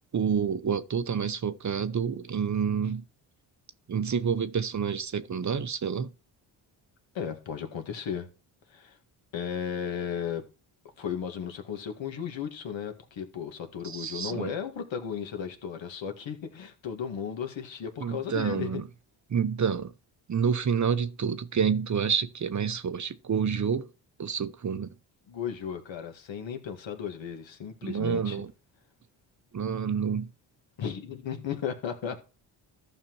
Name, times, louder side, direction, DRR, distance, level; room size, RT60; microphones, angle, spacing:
voice 1, 0.1-3.0 3.9-6.1 13.8-14.5 18.0-18.8 19.3-19.9 20.3-23.9 24.2-24.9 27.8-28.5 29.5-30.3, right 7 dB, 35° right, 0.8 m, -28 dB
voice 2, 7.1-8.3 8.7-9.0 9.3-10.5 11.0-18.8 25.3-28.4 30.8-32.2, left 7 dB, 60° left, 1.9 m, -35 dB
14.0 x 5.9 x 3.1 m
supercardioid pair, 50°, 50 cm